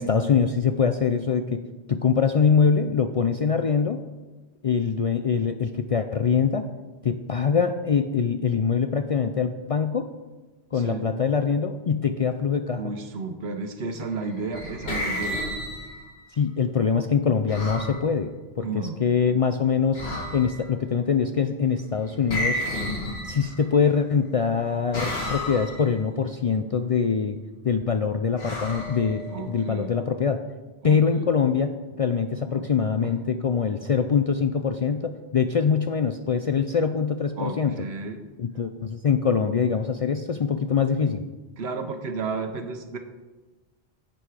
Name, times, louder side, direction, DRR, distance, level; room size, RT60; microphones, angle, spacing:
voice 1, 0.0-1.6 1.9-4.0 4.6-6.6 7.0-10.1 10.7-12.9 16.4-20.0 20.3-22.7 23.2-27.4 27.6-30.4 30.8-37.8 38.4-41.2, left 6 dB, 50° left, 7 dB, 0.4 m, -23 dB
voice 2, 12.8-15.4 18.6-19.0 29.3-29.9 30.8-31.3 32.5-32.6 37.4-38.2 41.6-43.0, right 4 dB, 80° right, 7 dB, 1.2 m, -32 dB
sound 1, 14.2-16.2 17.5-18.0 19.9-20.7 22.3-23.8 24.9-25.9 28.4-29.6, left 1 dB, 75° left, 2.0 m, -31 dB
10.5 x 7.7 x 4.9 m, 1.2 s
omnidirectional pair, 1.1 m